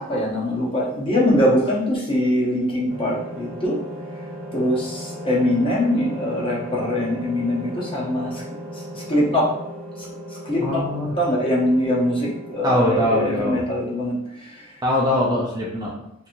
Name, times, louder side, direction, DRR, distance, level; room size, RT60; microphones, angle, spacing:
voice 1, 0.0-3.8 4.5-8.4 8.9-9.5 10.4-10.8 11.2-14.1 14.4-14.7, left 1 dB, 25° left, -5 dB, 0.7 m, -22 dB
sound 1, 2.9-12.6, equal, 70° right, 0.6 m, -36 dB
voice 2, 10.6-11.1 12.6-13.7 14.8-15.9, left 1 dB, 20° right, -3 dB, 0.5 m, -22 dB
2.9 x 2.6 x 2.5 m, 0.79 s
head